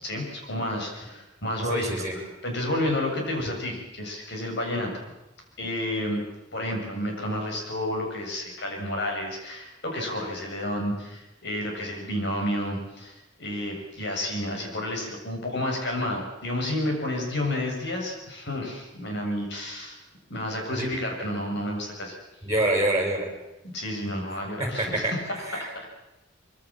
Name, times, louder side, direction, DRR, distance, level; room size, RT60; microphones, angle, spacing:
voice 1, 0.0-5.1 5.6-6.2 6.5-20.0 20.3-22.1 23.7-25.7, left 1 dB, 65° left, 1 dB, 7.2 m, -30 dB
voice 2, 1.7-2.1 20.7-20.9 22.4-23.3 24.6-25.1 25.5-25.8, right 1 dB, 20° right, 2 dB, 6.3 m, -26 dB
24.5 x 23.0 x 7.5 m, 0.96 s
head